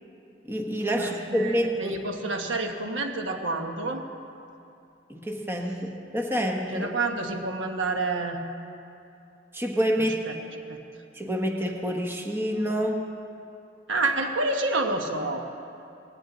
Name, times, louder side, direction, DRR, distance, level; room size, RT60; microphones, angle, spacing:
voice 1, 0.4-2.0 5.1-6.9 9.5-10.2 11.1-13.0, equal, 10° right, 1 dB, 1.2 m, -27 dB
voice 2, 0.9-4.0 6.7-8.4 10.0-10.3 10.7-10.8 13.9-15.5, right 2 dB, 75° right, 4 dB, 1.2 m, -29 dB
18.5 x 16.5 x 4.0 m, 2.7 s
head